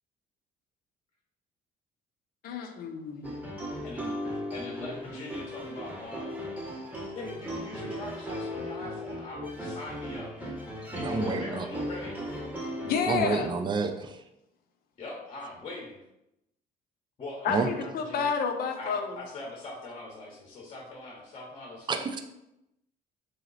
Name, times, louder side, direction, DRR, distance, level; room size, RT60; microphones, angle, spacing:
voice 1, 2.4-3.4 12.8-13.5 17.4-19.2, left 6 dB, 60° left, 5 dB, 0.6 m, -30 dB
sound 1, 3.2-13.7, left 1 dB, 10° right, 0.9 m, -37 dB
voice 2, 3.8-6.4 7.1-12.2 15.0-16.0 17.2-18.3 18.8-22.0, left 2 dB, 35° left, -1 dB, 0.9 m, -42 dB
voice 3, 10.9-11.7 13.1-14.2 17.5-17.7 21.9-22.2, right 4 dB, 25° right, 7 dB, 0.4 m, -29 dB
3.1 x 2.9 x 4.0 m, 0.87 s
cardioid pair, 110°, 17 cm